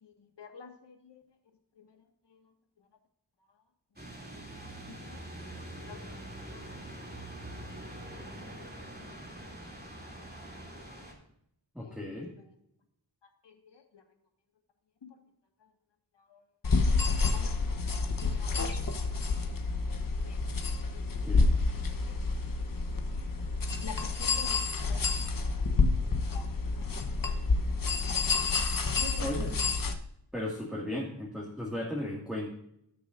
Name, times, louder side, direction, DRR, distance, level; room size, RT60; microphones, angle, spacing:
voice 1, 0.0-1.2 1.8-2.5 4.6-5.2 5.8-6.8 10.0-10.1 11.8-12.5 13.2-14.0 15.0-15.2 15.6-15.7 16.2-16.4 17.3-17.8 18.2-18.7 19.8-20.6 20.9-21.6 21.9-22.1 23.8-24.6 24.8-25.1 26.3-26.5 26.7-26.9 27.2-27.5 28.9-29.6, left 6 dB, 65° left, 4 dB, 1.8 m, -49 dB
sound 1, 4.0-11.1, right 1 dB, 20° right, 2.8 m, -44 dB
voice 2, 11.7-12.3 21.2-21.5 29.2-29.5 30.3-32.5, left 1 dB, ahead, -3 dB, 2.1 m, -35 dB
sound 2, 16.6-29.9, left 3 dB, 45° left, 1.1 m, -29 dB
17.5 x 6.7 x 2.6 m, 0.74 s
wide cardioid pair, 85°, 45 cm